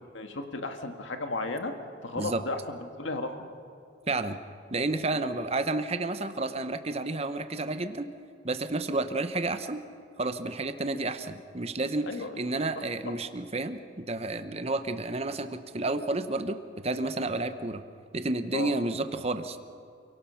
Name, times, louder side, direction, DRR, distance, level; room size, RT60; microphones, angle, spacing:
voice 1, 0.1-1.7 2.0-3.5 12.1-12.5 18.5-18.7, left 2 dB, 70° left, 5 dB, 1.8 m, -34 dB
voice 2, 4.1-4.4 4.7-8.1 8.4-9.8 10.2-12.1 12.4-17.8 18.1-19.6, right 2 dB, 30° right, 10 dB, 0.9 m, -31 dB
28.5 x 17.5 x 5.8 m, 2.5 s
head